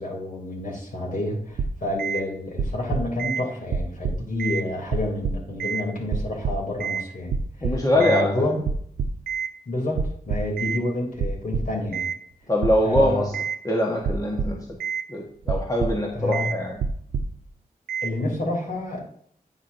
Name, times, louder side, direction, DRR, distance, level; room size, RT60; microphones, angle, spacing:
voice 1, 0.0-7.7 7.9-8.6 9.7-12.1 12.8-13.3 16.1-16.5 18.0-19.0, left 2 dB, 60° left, -2 dB, 3.1 m, -29 dB
sound 1, 1.6-2.2 2.6-3.4 3.7-4.6 4.9-5.8 6.1-7.0 7.3-8.2 8.7-9.5 10.0-10.8 11.2-12.2 12.6-13.6 14.0-15.0 15.4-16.1 16.3-16.6 16.8-17.4 17.9-18.1, right 5 dB, 90° right, 0.5 m, -27 dB
voice 2, 7.6-8.3 12.5-13.4 13.6-14.7 15.1-16.8, left 1 dB, 20° left, -1 dB, 1.3 m, -23 dB
9.3 x 6.0 x 2.7 m, 0.63 s
cardioid pair, 50°, 16 cm